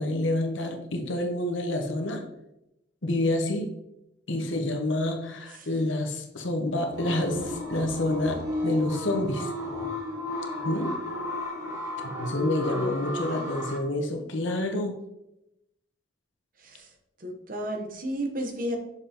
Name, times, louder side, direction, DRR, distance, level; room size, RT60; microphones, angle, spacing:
voice 1, 0.0-2.2 3.0-3.7 4.3-9.5 10.6-11.0 12.0-15.0, left 1 dB, 75° left, 4 dB, 1.0 m, -28 dB
sound 1, 6.9-13.8, left 1 dB, 15° right, 1.4 m, -34 dB
voice 2, 12.3-13.6 16.6-16.9 17.2-18.8, equal, 45° right, 3 dB, 0.9 m, -34 dB
6.5 x 5.4 x 2.9 m, 0.86 s
head